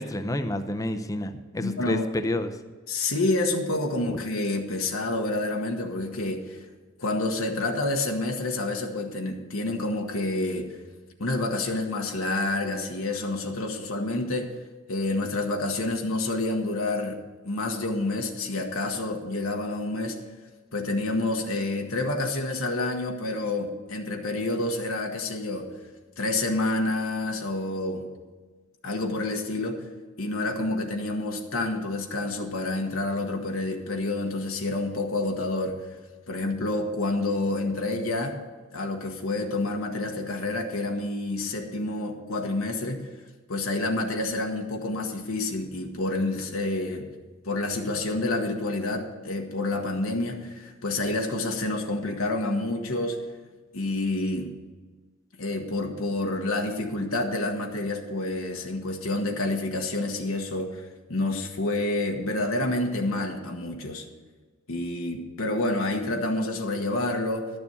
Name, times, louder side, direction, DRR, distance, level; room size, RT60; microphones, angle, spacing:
voice 1, 0.0-2.5 4.1-4.2, left 1 dB, 15° left, 8 dB, 0.7 m, -29 dB
voice 2, 1.6-2.1 2.9-6.6 7.0-10.8 11.2-14.5 14.9-17.2 17.4-20.2 20.7-25.7 26.2-28.1 28.8-29.8 30.2-35.8 36.3-38.4 38.7-43.1 43.5-47.1 47.4-53.2 53.7-54.5 55.4-64.0 64.7-67.5, left 2 dB, 75° left, 2 dB, 1.3 m, -28 dB
12.0 x 7.0 x 7.0 m, 1.3 s
head